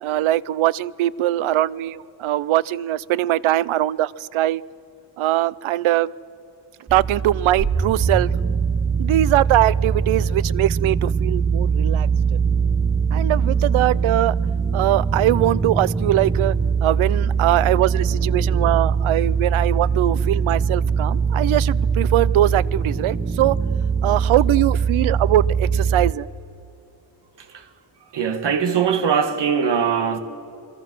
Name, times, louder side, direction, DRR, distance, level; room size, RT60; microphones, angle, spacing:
voice 1, 0.0-4.6 5.2-6.1 6.9-8.3 9.0-12.4 13.1-14.3 14.7-16.5 16.8-23.6 24.0-26.3, right 14 dB, 85° right, 0.6 m, -21 dB
sound 1, 6.9-26.1, right 6 dB, 15° right, 0.6 m, -22 dB
voice 2, 28.1-30.2, right 7 dB, 60° right, 1.7 m, -21 dB
28.0 x 23.0 x 6.1 m
wide cardioid pair, 130°, 47 cm